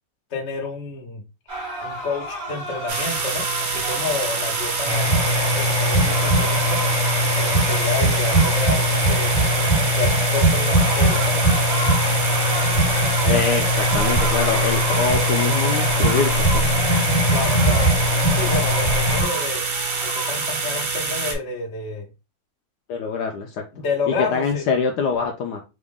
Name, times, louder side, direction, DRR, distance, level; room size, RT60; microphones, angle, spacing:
voice 1, 0.3-1.2 1.8-6.8 7.3-9.3 9.9-11.4 17.3-17.9 18.3-19.6 20.0-22.1 23.7-24.6, left 4 dB, 45° left, 1 dB, 1.0 m, -29 dB
sound 1, 1.5-10.0 10.7-20.6, right 1 dB, 50° right, 2.0 m, -33 dB
sound 2, 2.9-21.3, right 4 dB, 80° right, 1.7 m, -26 dB
sound 3, 4.9-19.2, equal, 15° left, 1.3 m, -20 dB
voice 2, 13.2-16.7 22.9-25.6, left 5 dB, 70° left, 3 dB, 1.1 m, -25 dB
3.9 x 2.5 x 3.5 m, 0.28 s
omnidirectional pair, 2.0 m